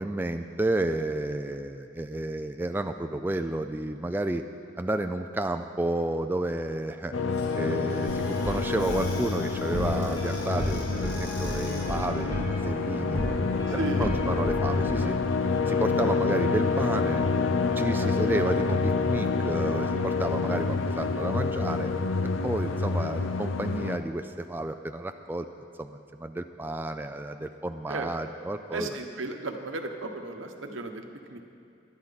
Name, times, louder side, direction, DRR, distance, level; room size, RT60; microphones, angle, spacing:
voice 1, 0.0-4.4 4.8-7.1 7.5-13.3 13.7-15.2 15.7-17.2 17.8-21.9 22.4-25.5 25.8-29.0, right 1 dB, 10° right, 7 dB, 0.3 m, -31 dB
sound 1, 7.1-24.0, left 4 dB, 85° left, 0.6 m, -27 dB
Squeak / Cupboard open or close, 7.3-12.1, left 2 dB, 60° left, 2.8 m, -46 dB
sound 2, 8.1-14.9, equal, 20° left, 1.7 m, -35 dB
voice 2, 13.7-14.1 14.7-14.9 17.9-18.2 22.5-22.8 27.9-28.1 28.7-31.4, right 3 dB, 85° right, 5 dB, 1.2 m, -35 dB
22.5 x 10.5 x 4.1 m, 2.6 s
head